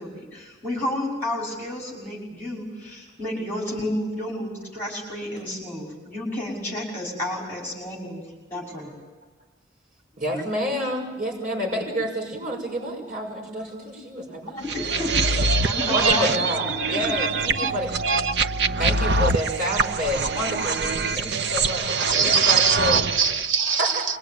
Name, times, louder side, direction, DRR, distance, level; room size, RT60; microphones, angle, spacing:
voice 1, 0.0-8.2 8.5-8.9 14.5-15.4 15.6-16.3 16.7-17.0, left 1 dB, 10° left, -2 dB, 5.9 m, -31 dB
voice 2, 10.2-15.1 15.9-18.0 18.8-23.0 23.8-24.0, equal, 40° right, -2 dB, 6.2 m, -29 dB
sound 1, 14.7-23.5, right 4 dB, 60° right, 0.9 m, -24 dB
voice 3, 15.5-16.3 16.8-17.3 17.5-17.7 18.0-18.5 21.9-24.0, right 5 dB, 85° right, 4 dB, 1.4 m, -24 dB
26.0 x 22.0 x 8.9 m, 1.2 s
head